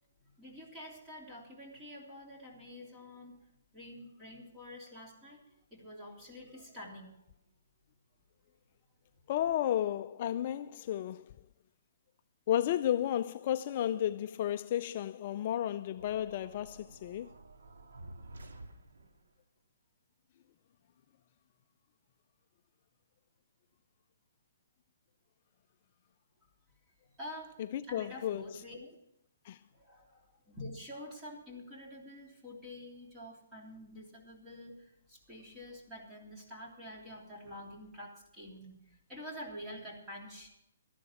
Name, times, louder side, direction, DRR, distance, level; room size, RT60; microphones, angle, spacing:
voice 1, 0.4-3.4 3.7-5.4 5.7-7.1 27.2-27.6 27.9-29.0 29.7-38.8 39.1-40.5, left 1 dB, 10° right, 3.2 m, -47 dB
voice 2, 9.3-11.3 12.5-17.3 27.6-28.6 29.4-29.6, left 11 dB, 35° left, 0.4 m, -33 dB
sound 1, 16.0-19.3, right 2 dB, 85° right, 2.3 m, -51 dB
13.0 x 11.5 x 5.8 m
hypercardioid pair, 165°, 0 cm